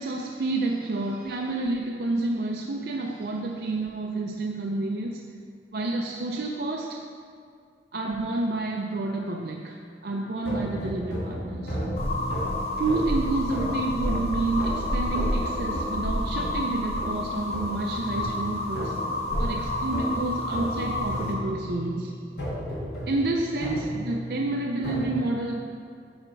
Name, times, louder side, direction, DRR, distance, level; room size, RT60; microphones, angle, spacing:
voice 1, 0.0-5.2 5.7-7.0 7.9-9.8 10.0-11.8 12.8-18.9 19.4-22.1 23.1-25.6, right 2 dB, 55° right, 0 dB, 0.5 m, -29 dB
sound 1, 10.4-25.1, equal, 65° left, 1.9 m, -34 dB
sound 2, 12.0-21.3, left 1 dB, 35° left, 1.0 m, -30 dB
9.0 x 4.3 x 5.1 m, 2.2 s
head